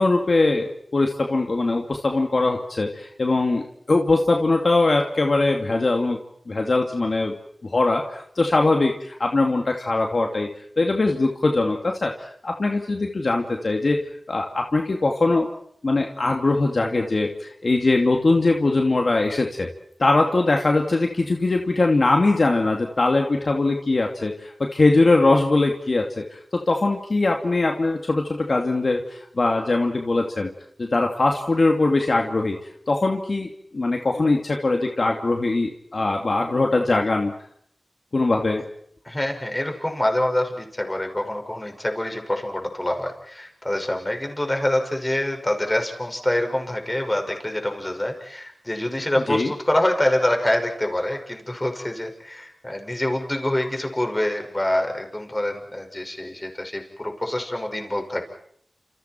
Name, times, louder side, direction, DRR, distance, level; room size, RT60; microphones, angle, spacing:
voice 1, 0.0-6.2 6.5-7.3 7.6-10.5 10.8-14.0 14.3-15.5 15.8-19.7 20.0-30.5 30.8-32.6 32.9-37.3 38.1-38.6 49.3-49.5, left 2 dB, 65° left, 2 dB, 2.5 m, -21 dB
voice 2, 39.0-58.3, left 1 dB, 25° left, 4 dB, 5.8 m, -25 dB
30.0 x 28.5 x 4.6 m, 0.66 s
cardioid pair, 45°, 0 cm